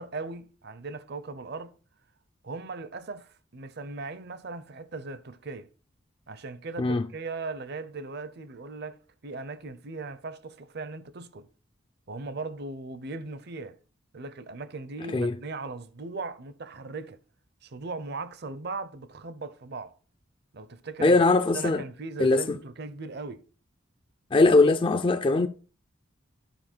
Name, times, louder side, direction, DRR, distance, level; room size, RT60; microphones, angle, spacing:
voice 1, 0.0-1.7 2.4-5.7 6.3-11.5 12.1-13.8 14.1-17.2 17.6-19.9 20.5-21.2 21.5-23.4, right 3 dB, 50° right, 0.7 m, -38 dB
voice 2, 21.0-21.8 22.2-22.6 24.3-25.5, left 3 dB, 25° left, 0.3 m, -21 dB
12.0 x 4.7 x 4.4 m
head